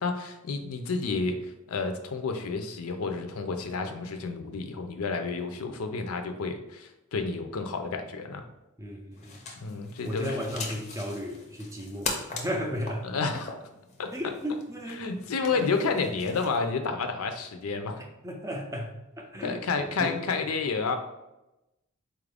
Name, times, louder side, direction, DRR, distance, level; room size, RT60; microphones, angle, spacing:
voice 1, 0.0-8.4 9.6-10.4 13.0-13.5 14.0-14.1 15.0-18.0 19.4-20.9, left 4 dB, 75° left, 6 dB, 0.5 m, -30 dB
voice 2, 8.8-9.4 10.1-13.0 14.1-15.8 18.2-20.1, equal, 15° right, 1 dB, 0.4 m, -35 dB
sound 1, 9.1-16.7, left 3 dB, 30° left, 0.6 m, -41 dB
4.3 x 2.4 x 3.3 m, 0.94 s
head